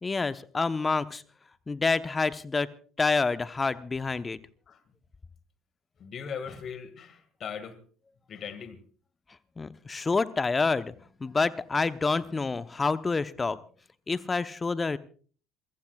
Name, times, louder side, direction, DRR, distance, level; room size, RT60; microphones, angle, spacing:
voice 1, 0.0-1.2 1.7-2.7 3.0-4.4 9.6-10.9 11.2-13.6 14.1-15.0, left 4 dB, 25° left, 0.9 m, -27 dB
voice 2, 6.0-7.8 8.3-8.8, left 7 dB, 45° left, 1.9 m, -39 dB
27.5 x 15.5 x 2.4 m
figure-of-eight pair, 55°, 0 cm